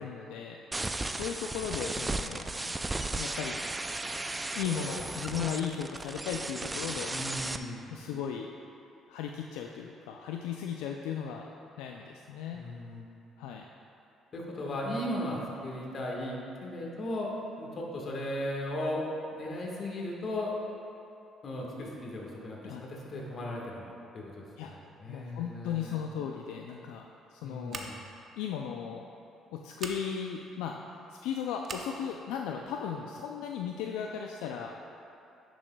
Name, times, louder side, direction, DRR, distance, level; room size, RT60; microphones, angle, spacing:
voice 1, 0.0-2.7 3.2-3.6 4.5-7.2 7.9-8.5 9.1-11.5 11.8-12.7 13.4-13.7 22.6-22.8 24.6-24.7 25.1-28.0 28.4-29.1 29.5-30.8 31.1-34.7, left 8 dB, 90° left, 1 dB, 0.3 m, -36 dB
sound 1, 0.7-7.6, right 2 dB, 15° right, 0.3 m, -35 dB
voice 2, 7.1-7.9 12.5-13.1 14.3-17.3 17.6-19.0 19.3-20.5 21.4-23.9 24.1-26.0 27.4-28.0, left 1 dB, 50° left, -2 dB, 1.5 m, -36 dB
Scissors, 27.7-28.2 29.7-30.0 31.6-31.9, right 4 dB, 45° right, 0.7 m, -40 dB
10.0 x 6.2 x 2.3 m, 2.7 s
cardioid pair, 85°, 0 cm